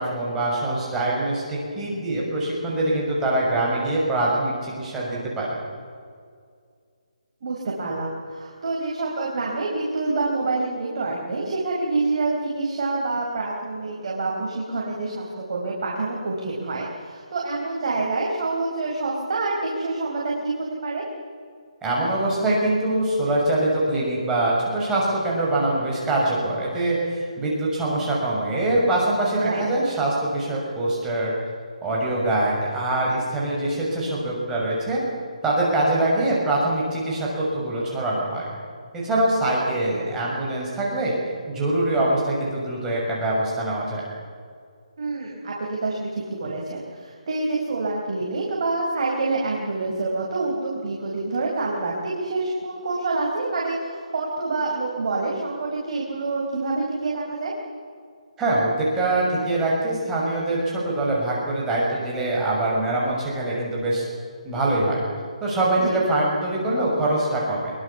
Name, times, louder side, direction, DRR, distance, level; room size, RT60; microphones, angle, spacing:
voice 1, 0.0-5.6 21.8-31.3 31.8-35.0 35.4-38.5 39.0-41.1 41.5-44.0 58.4-64.0 64.4-65.0 65.4-67.7, right 1 dB, 10° right, -5 dB, 6.4 m, -23 dB
voice 2, 7.4-21.0 29.4-29.7 45.0-57.5 65.8-65.9, right 3 dB, 50° right, -2 dB, 5.0 m, -27 dB
24.0 x 23.0 x 7.1 m, 2.1 s
hypercardioid pair, 160°, 4 cm